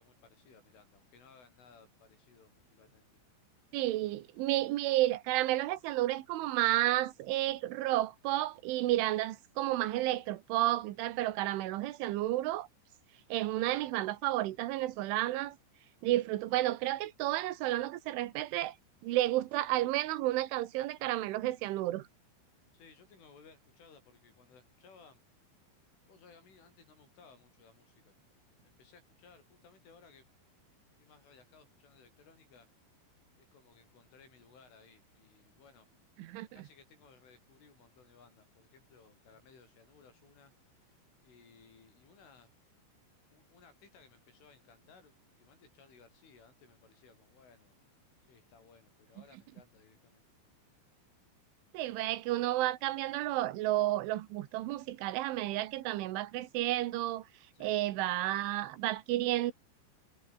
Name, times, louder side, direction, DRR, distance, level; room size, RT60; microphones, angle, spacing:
voice 1, 0.0-3.1 22.7-25.2 26.1-28.1 28.5-30.3 31.0-32.7 33.5-35.9 36.5-42.6 43.3-47.8 48.3-50.2 57.5-57.9, left 5 dB, 80° left, 10.0 m, -61 dB
voice 2, 3.7-12.7 13.3-15.6 16.0-18.8 19.0-22.1 36.2-36.5 51.7-57.3 57.6-59.5, right 15 dB, 85° right, 3.7 m, -31 dB
omnidirectional pair, 5.6 m